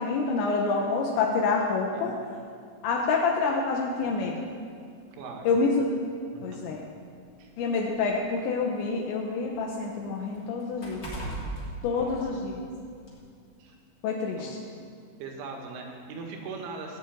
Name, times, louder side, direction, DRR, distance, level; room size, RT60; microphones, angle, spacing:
voice 1, 0.0-2.2 2.8-4.5 5.4-5.9 6.4-6.8 7.6-11.1 11.8-12.6 14.0-14.6, left 4 dB, 80° left, 0 dB, 3.2 m, -27 dB
sound 1, 4.0-4.2 5.2-5.3 5.8-5.9 6.9-8.8 9.2-12.6 13.0-13.2, right 1 dB, 20° left, 2.9 m, -40 dB
voice 2, 5.1-5.6 6.3-6.6 7.4-7.5 11.9-12.4 13.6-13.8 14.3-14.5 15.2-17.0, right 4 dB, 85° right, 1 dB, 4.0 m, -40 dB
15.5 x 6.6 x 9.0 m, 2.2 s
omnidirectional pair, 5.4 m